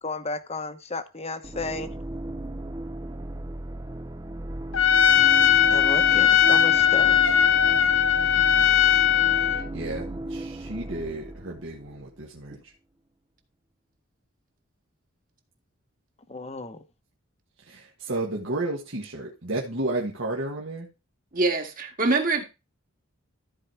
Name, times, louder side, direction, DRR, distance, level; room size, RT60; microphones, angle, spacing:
voice 1, 0.0-1.9 5.7-7.4 16.3-16.8, left 3 dB, 30° left, 1.0 m, -33 dB
sound 1, 1.4-12.2, right 1 dB, 15° right, 0.6 m, -36 dB
Trumpet, 4.7-9.6, left 9 dB, 60° left, 0.8 m, -19 dB
voice 2, 8.2-8.7 9.4-12.7 17.6-20.9, right 2 dB, 60° right, 1.6 m, -33 dB
voice 3, 21.3-22.4, right 3 dB, 40° right, 1.9 m, -24 dB
14.0 x 4.7 x 4.5 m
head